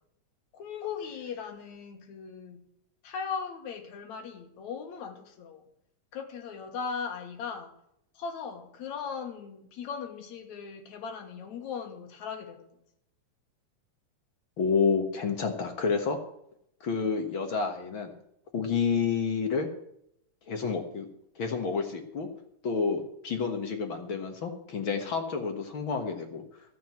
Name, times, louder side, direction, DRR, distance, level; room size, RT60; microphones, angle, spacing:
voice 1, 0.5-2.6 3.0-5.6 6.1-7.7 8.1-12.7, left 6 dB, 70° left, 6 dB, 2.8 m, -38 dB
voice 2, 14.6-16.2 16.8-18.1 18.5-19.7 20.5-21.1 21.4-22.3 22.6-26.4, left 5 dB, 50° left, 5 dB, 1.8 m, -29 dB
14.0 x 7.7 x 7.5 m, 0.74 s
omnidirectional pair, 3.5 m